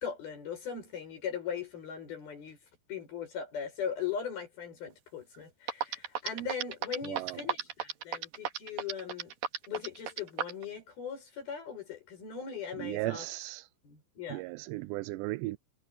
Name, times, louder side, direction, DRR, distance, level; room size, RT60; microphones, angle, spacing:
voice 1, 0.0-2.6 2.9-9.3 9.7-13.3 13.8-14.4, left 7 dB, 60° left, 8.9 m, -39 dB
sound 1, 5.3-5.4 5.7-10.6, right 9 dB, 60° right, 3.4 m, -33 dB
voice 2, 7.1-7.4 12.8-13.6 14.3-15.6, right 20 dB, 85° right, 2.7 m, -36 dB
omnidirectional pair, 5.0 m